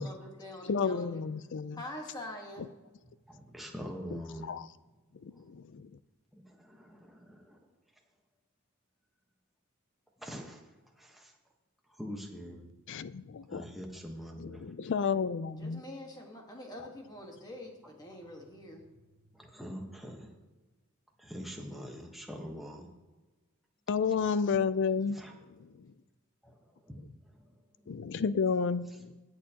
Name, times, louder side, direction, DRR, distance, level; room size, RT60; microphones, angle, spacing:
voice 1, 0.0-1.2 1.7-2.7 15.5-18.8, left 1 dB, 20° left, 1 dB, 1.5 m, -45 dB
voice 2, 0.7-1.8 4.5-4.7 5.2-5.9 12.9-13.6 14.4-15.8 23.9-25.2 25.5-25.9 27.9-29.2, left 5 dB, 55° left, 15 dB, 0.4 m, -31 dB
voice 3, 3.3-4.6 5.3-5.5 6.3-7.6 10.2-10.6 11.0-11.3 11.9-12.7 13.5-14.9 19.3-20.4 21.2-22.9 25.1-25.3 26.4-27.5, equal, ahead, 0 dB, 1.1 m, -44 dB
19.0 x 6.6 x 2.9 m, 1.2 s
head